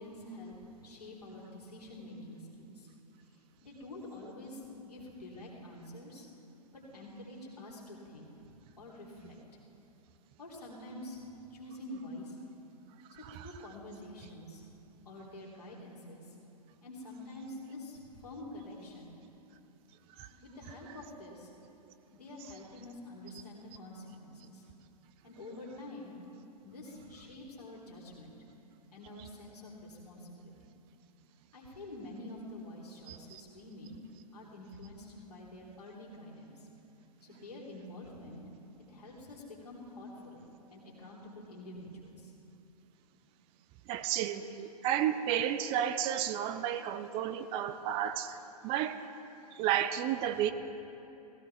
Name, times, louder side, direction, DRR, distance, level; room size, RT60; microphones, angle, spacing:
voice 1, 0.0-2.9 3.3-6.3 6.7-8.5 8.8-9.4 10.4-11.2 11.5-12.5 13.1-14.7 15.0-16.3 16.8-19.1 20.3-21.5 22.1-24.6 25.2-26.1 26.6-28.3 28.9-30.7 31.5-33.9 34.3-36.7 37.2-38.4 38.9-40.4 40.7-42.3, left 1 dB, 75° left, -4 dB, 3.4 m, -47 dB
voice 2, 33.1-33.4 43.9-48.4 48.6-49.0 49.5-50.5, right 10 dB, 30° right, 11 dB, 0.5 m, -32 dB
19.0 x 16.0 x 3.4 m, 2.9 s
figure-of-eight pair, 105°, 20 cm